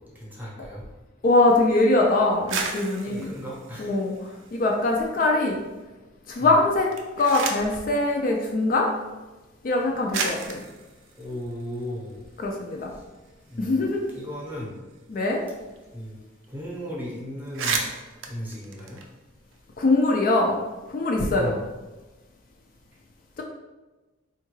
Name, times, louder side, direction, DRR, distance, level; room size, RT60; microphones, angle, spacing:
voice 1, 0.1-0.8 3.0-3.9 6.4-6.5 11.2-12.2 13.5-14.7 15.9-16.2 16.5-17.8 18.3-19.0 21.4-21.6, equal, 10° right, -5 dB, 0.7 m, -36 dB
voice 2, 1.2-3.3 3.8-4.1 4.5-5.6 6.3-6.9 7.2-8.9 9.6-10.6 12.4-12.9 13.6-14.1 15.1-15.4 19.8-20.6 20.9-21.6, left 2 dB, 45° left, 0 dB, 0.3 m, -22 dB
sound 1, 2.3-4.9 5.3-5.9 6.7-7.8 8.9-9.0 9.7-9.8 10.1-12.4 12.8-12.9 13.1-15.8 16.0-16.1 16.4-16.7 17.0-17.1 17.4-19.6, right 4 dB, 75° right, 0.4 m, -34 dB
3.6 x 2.2 x 3.0 m, 1.2 s
head